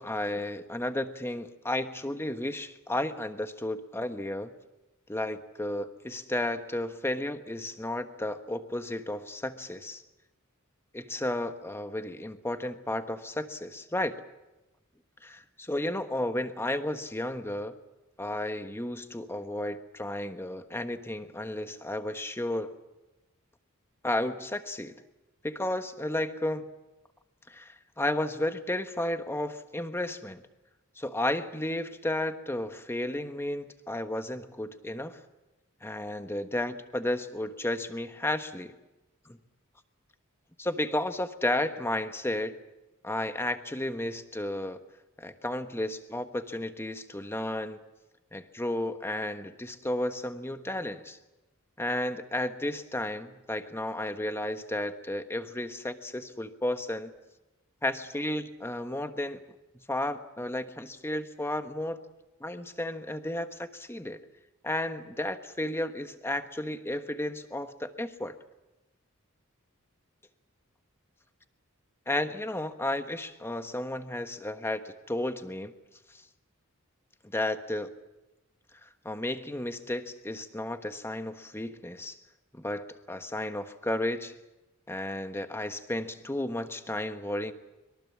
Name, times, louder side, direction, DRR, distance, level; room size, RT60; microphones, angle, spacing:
voice 1, 0.0-4.5 5.1-10.0 10.9-14.2 15.2-17.7 18.2-22.7 24.0-25.0 25.4-26.7 27.5-30.4 31.0-35.2 35.8-38.7 39.3-39.4 40.6-42.6 43.0-44.8 45.2-47.8 48.3-51.2 51.8-57.1 57.8-59.4 59.7-62.0 62.4-64.2 64.6-68.3 72.1-75.7 77.2-77.9 78.8-82.2 82.5-84.3 84.9-87.5, left 1 dB, 10° left, 8 dB, 1.3 m, -33 dB
24.0 x 22.5 x 7.4 m, 1.0 s
head